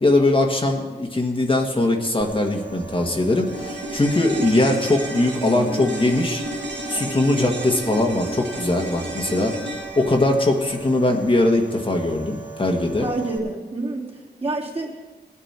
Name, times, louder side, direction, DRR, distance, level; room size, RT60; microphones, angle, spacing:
voice 1, 0.0-6.4 6.9-9.6 10.0-13.1, left 2 dB, 30° left, 1 dB, 1.5 m, -21 dB
sound 1, 2.2-13.4, right 5 dB, 10° right, 2.3 m, -39 dB
sound 2, 3.5-12.0 12.2-12.3, right 1 dB, 80° right, 1.7 m, -33 dB
voice 2, 5.4-6.1 6.9-7.2 13.0-15.2, right 2 dB, 35° right, -4 dB, 3.1 m, -29 dB
18.0 x 9.5 x 4.3 m, 1.2 s
cardioid pair, 70°, 18 cm